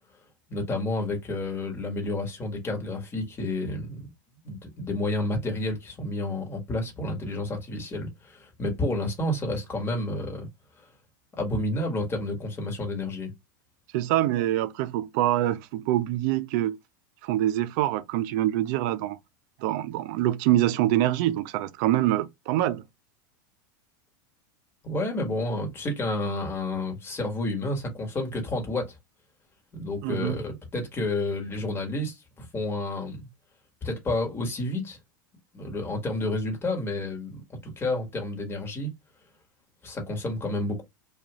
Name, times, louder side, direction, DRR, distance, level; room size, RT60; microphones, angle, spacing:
voice 1, 0.5-4.1 4.4-10.5 10.8-10.9 11.4-13.3 24.8-28.9 29.7-33.3 33.8-35.0 35.5-38.9 39.8-40.8, left 2 dB, 20° left, 1.3 m, -30 dB
voice 2, 13.9-16.8 17.2-19.2 19.6-22.8 30.0-30.4, right 14 dB, 60° right, 0.5 m, -25 dB
2.5 x 2.3 x 3.0 m
supercardioid pair, 125°, 11 cm